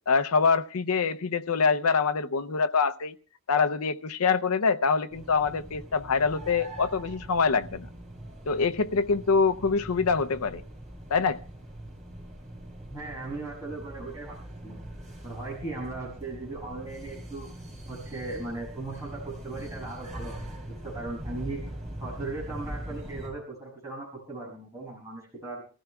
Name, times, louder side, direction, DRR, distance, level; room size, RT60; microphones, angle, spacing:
voice 1, 0.1-3.1 3.5-7.9 8.5-10.6 11.1-11.4, left 5 dB, 80° left, 0.6 m, -25 dB
sound 1, 5.1-23.3, right 1 dB, 35° right, 7.3 m, -42 dB
voice 2, 12.9-14.4 14.6-14.8 15.2-17.5 17.9-20.5 20.8-21.6 22.0-25.6, right 2 dB, 15° right, 7.6 m, -38 dB
30.0 x 15.0 x 2.3 m
head